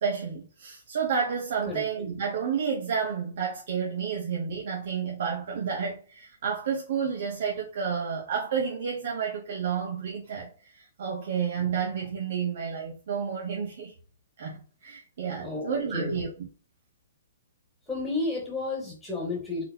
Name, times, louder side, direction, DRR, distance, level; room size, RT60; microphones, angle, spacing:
voice 1, 0.0-13.9 14.4-16.5, right 6 dB, 60° right, 1.0 m, -30 dB
voice 2, 15.4-16.2 17.9-19.6, left 3 dB, 5° left, 2.0 m, -32 dB
4.1 x 3.7 x 2.8 m
hypercardioid pair, 155°, 0 cm